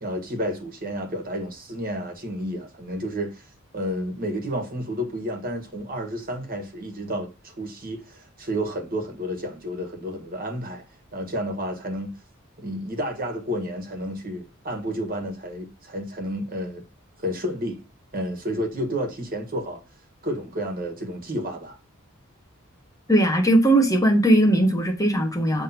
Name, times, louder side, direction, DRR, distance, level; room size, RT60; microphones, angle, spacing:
voice 1, 0.0-10.8 11.1-12.2 12.6-16.8 17.2-17.8 18.1-19.8 20.2-21.8, equal, 45° right, 1.7 m, -31 dB
voice 2, 23.1-25.6, right 1 dB, 15° left, 1.1 m, -19 dB
7.4 x 3.5 x 5.8 m
head